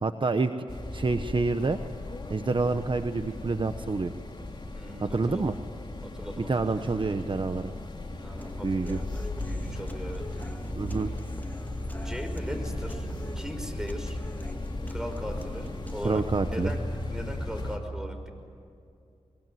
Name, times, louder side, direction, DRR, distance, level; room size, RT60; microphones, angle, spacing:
voice 1, 0.0-0.5 0.9-1.8 2.3-4.1 5.0-5.5 6.4-7.7 8.6-9.0 10.8-11.1 16.0-16.7, right 3 dB, 45° right, 8 dB, 1.1 m, -27 dB
sound 1, 0.7-17.8, left 1 dB, 40° left, 3.3 m, -36 dB
voice 2, 4.7-5.5 6.0-6.8 8.2-10.2 11.9-13.1 13.4-14.2 14.9-16.2 16.5-16.8 17.1-18.3, equal, 5° right, 5 dB, 5.6 m, -39 dB
Human voice / Acoustic guitar, 8.4-16.4, left 1 dB, 15° left, 2.0 m, -45 dB
23.0 x 23.0 x 9.3 m, 2.5 s
cardioid pair, 60°, 12 cm